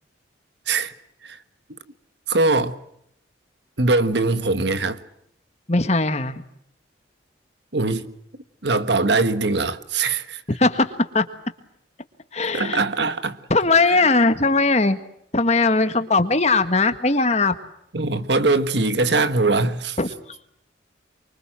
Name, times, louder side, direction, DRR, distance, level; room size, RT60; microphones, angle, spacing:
voice 1, 2.3-2.7 3.8-5.0 7.7-8.1 8.6-10.4 12.5-13.4 13.9-14.0 17.9-20.0, right 3 dB, 65° right, 1.4 m, -21 dB
voice 2, 5.7-6.3 10.5-11.2 12.3-12.8 13.5-15.0 15.3-17.5 20.0-20.1, left 3 dB, 35° left, 1.6 m, -19 dB
25.0 x 24.0 x 7.5 m
head